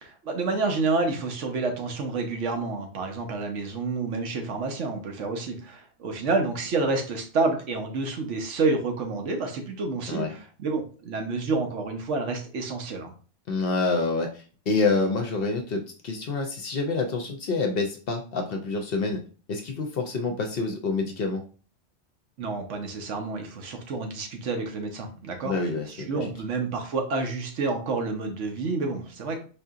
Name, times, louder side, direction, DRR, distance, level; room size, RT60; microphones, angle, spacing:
voice 1, 0.0-13.1 22.4-29.4, right 3 dB, 85° right, 4 dB, 1.2 m, -29 dB
voice 2, 13.5-19.2 19.5-21.4 25.4-26.3, left 3 dB, 60° left, 4 dB, 0.7 m, -27 dB
4.7 x 2.7 x 2.4 m, 0.39 s
omnidirectional pair, 1.2 m